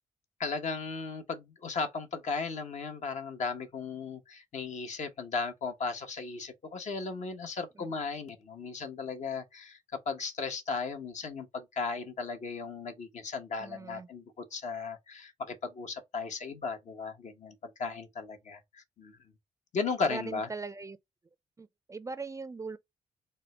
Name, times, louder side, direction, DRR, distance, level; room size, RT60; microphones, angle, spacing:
voice 1, 0.4-9.8 10.1-18.6 19.0-19.2 19.7-20.5, left 4 dB, 60° left, 1.1 m, -36 dB
voice 2, 13.6-14.1 20.0-21.0 21.6-22.8, right 4 dB, 20° right, 0.4 m, -40 dB
3.4 x 2.2 x 4.3 m
cardioid pair, 80°, 14 cm